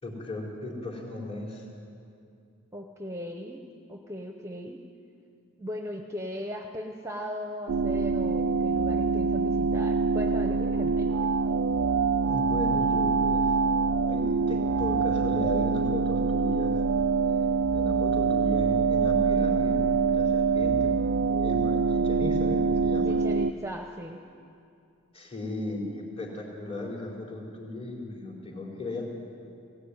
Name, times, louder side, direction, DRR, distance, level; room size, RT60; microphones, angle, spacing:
voice 1, 0.0-1.7 12.3-13.6 13.9-16.8 17.6-21.2 21.4-23.1 25.1-29.1, left 2 dB, 30° left, -2 dB, 4.2 m, -36 dB
voice 2, 2.7-3.6 3.9-4.8 5.6-11.1 23.0-24.2, equal, 15° right, 3 dB, 0.8 m, -38 dB
sound 1, 7.7-23.5, right 4 dB, 80° right, 0.4 m, -25 dB
18.0 x 16.5 x 9.8 m, 2.4 s
head